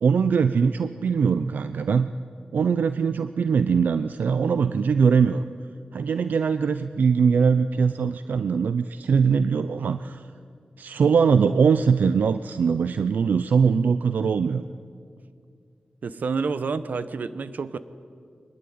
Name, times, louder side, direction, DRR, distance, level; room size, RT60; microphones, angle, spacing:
voice 1, 0.0-2.1 2.5-5.4 5.9-10.2 10.8-14.6, right 6 dB, 90° right, 11 dB, 0.6 m, -21 dB
voice 2, 16.0-17.8, right 4 dB, 70° right, 13 dB, 1.1 m, -29 dB
23.5 x 20.5 x 9.4 m, 2.3 s
wide cardioid pair, 115°, 3 cm